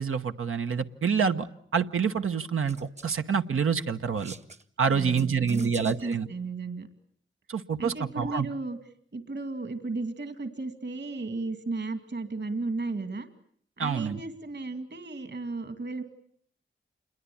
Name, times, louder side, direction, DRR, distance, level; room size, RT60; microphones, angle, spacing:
voice 1, 0.0-1.5 1.7-4.3 4.8-6.3 7.5-8.5 13.8-14.2, right 6 dB, 85° right, 7 dB, 1.1 m, -27 dB
sound 1, 2.7-3.2 4.0-4.6 5.2-6.2, right 3 dB, 35° right, 1.0 m, -47 dB
voice 2, 4.9-6.9 7.8-8.8 9.1-13.3 13.8-16.0, right 3 dB, 55° right, 9 dB, 2.4 m, -34 dB
27.5 x 22.0 x 8.6 m, 0.63 s
wide cardioid pair, 80°, 21 cm